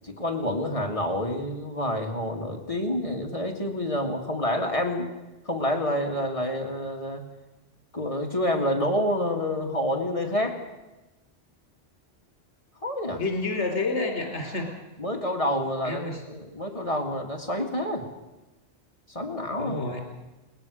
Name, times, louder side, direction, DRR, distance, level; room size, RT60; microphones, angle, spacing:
voice 1, 0.0-5.1 5.5-7.2 7.9-10.6 12.8-13.2 15.0-18.0 19.1-19.8, left 1 dB, 30° left, 1 dB, 2.4 m, -28 dB
voice 2, 13.2-14.7 15.8-16.2 19.6-20.0, left 3 dB, 70° left, 2 dB, 3.8 m, -29 dB
21.5 x 19.5 x 6.5 m, 1.1 s
omnidirectional pair, 1.2 m